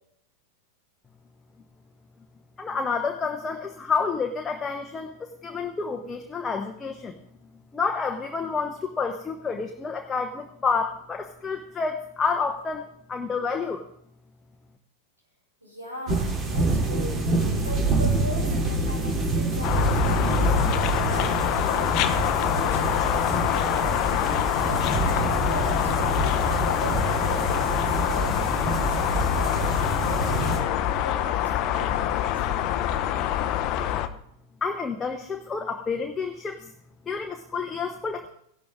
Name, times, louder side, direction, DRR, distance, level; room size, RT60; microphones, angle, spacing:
voice 1, 2.6-7.1 7.7-13.8 34.6-36.7 37.1-38.3, left 5 dB, 15° left, 4 dB, 1.0 m, -29 dB
voice 2, 15.6-17.2 17.6-32.7, right 1 dB, 80° right, -4 dB, 6.6 m, -39 dB
sound 1, 16.1-30.6, right 2 dB, 30° right, 3.0 m, -26 dB
sound 2, 19.6-34.1, left 11 dB, 40° left, 0.8 m, -25 dB
16.0 x 11.5 x 3.7 m, 0.71 s
figure-of-eight pair, 90°, 0 cm